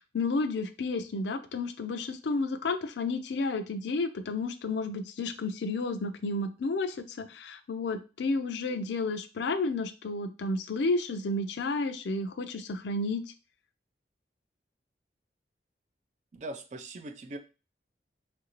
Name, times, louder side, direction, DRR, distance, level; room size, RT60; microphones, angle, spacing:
voice 1, 0.1-13.2, left 3 dB, 80° left, 9 dB, 0.4 m, -31 dB
voice 2, 16.3-17.4, right 2 dB, 40° right, 8 dB, 0.3 m, -40 dB
3.1 x 2.6 x 3.0 m, 0.32 s
head